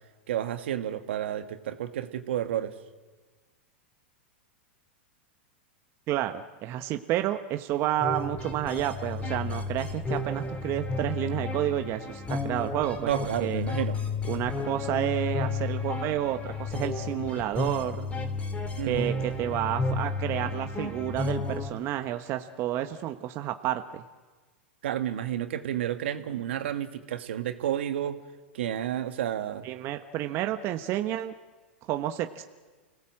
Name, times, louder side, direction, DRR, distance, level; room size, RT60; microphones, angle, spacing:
voice 1, 0.3-2.7 13.0-14.0 18.8-19.2 24.8-28.2 28.5-29.7, right 11 dB, 75° right, 8 dB, 1.9 m, -31 dB
voice 2, 6.1-13.1 13.4-13.6 14.3-18.1 18.8-24.0 29.6-31.3 31.9-32.4, right 13 dB, 40° right, 7 dB, 1.2 m, -30 dB
sound 1, 8.0-21.7, left 3 dB, 20° left, 3.4 m, -32 dB
30.0 x 18.0 x 7.7 m, 1.3 s
hypercardioid pair, 110°, 6 cm